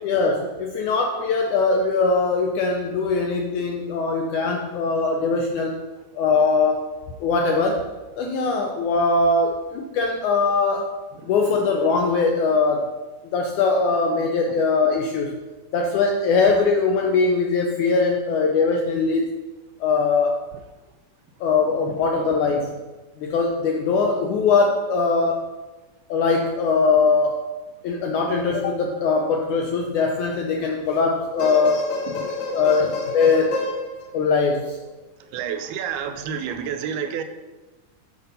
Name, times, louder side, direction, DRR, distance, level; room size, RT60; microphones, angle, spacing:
voice 1, 0.0-5.8 6.2-6.9 7.2-7.9 8.2-11.0 11.3-12.9 13.3-15.4 15.7-19.4 19.8-20.4 21.4-22.8 23.2-25.5 26.1-27.4 27.8-31.9 32.5-33.6 34.1-34.8, left 4 dB, 85° left, 2 dB, 1.7 m, -21 dB
sound 1, 31.1-34.7 36.2-36.3, left 3 dB, 60° left, 2.6 m, -30 dB
voice 2, 35.3-37.2, right 7 dB, 90° right, 8 dB, 2.7 m, -29 dB
7.9 x 6.9 x 5.3 m, 1.2 s
omnidirectional pair, 4.3 m